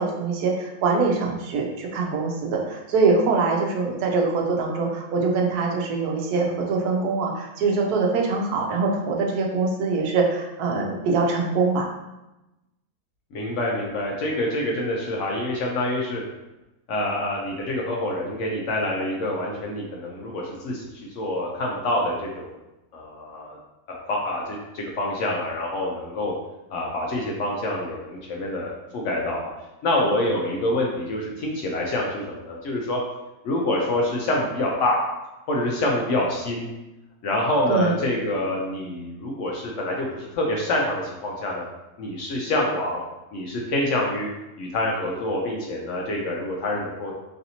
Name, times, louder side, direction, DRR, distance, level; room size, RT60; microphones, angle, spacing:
voice 1, 0.0-11.9 37.7-37.9, right 4 dB, 90° right, 1 dB, 1.1 m, -23 dB
voice 2, 13.3-16.2 16.9-22.5 22.9-23.6 23.9-26.3 26.7-29.5 29.8-33.0 33.4-35.0 35.5-36.7 37.2-41.6 42.0-43.0 43.3-44.3 44.6-47.2, left 1 dB, 65° left, -2 dB, 0.8 m, -26 dB
3.2 x 2.7 x 2.7 m, 0.99 s
omnidirectional pair, 1.6 m